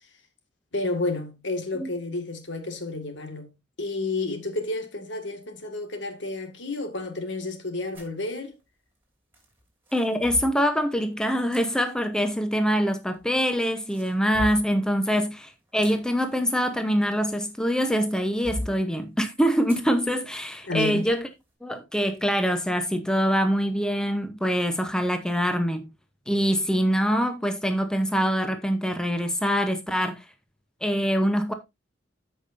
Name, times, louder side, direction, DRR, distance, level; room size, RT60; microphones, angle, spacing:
voice 1, 0.7-3.5 3.8-8.5 15.0-15.2 20.7-21.1, left 2 dB, 70° left, 2.0 m, -31 dB
sound 1, 7.9-8.2 9.3-10.6 11.5-11.6 12.8-13.4 13.8-14.8 15.5-17.6 18.1-18.8 19.7-19.9 20.3-20.4 21.0-21.2, equal, 10° right, 3.0 m, -37 dB
voice 2, 9.9-21.3 21.6-25.9 26.3-30.2 30.8-31.5, equal, 5° left, 0.8 m, -24 dB
13.5 x 5.4 x 2.6 m
head